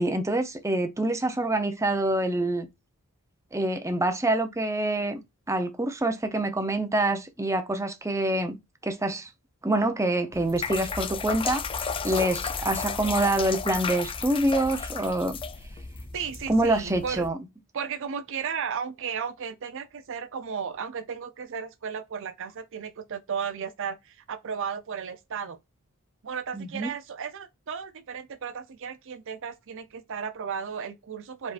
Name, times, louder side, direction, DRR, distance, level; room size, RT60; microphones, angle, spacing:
voice 1, 0.0-2.7 3.5-5.2 5.5-8.6 8.8-9.3 9.6-15.4 16.5-17.4 26.5-26.9, right 1 dB, 15° right, 0.6 m, -26 dB
male peeing, 10.3-17.3, left 5 dB, 25° left, 0.4 m, -33 dB
voice 2, 16.1-17.3 17.7-25.6 26.2-31.5, right 6 dB, 60° right, 0.5 m, -34 dB
4.8 x 3.7 x 2.5 m
head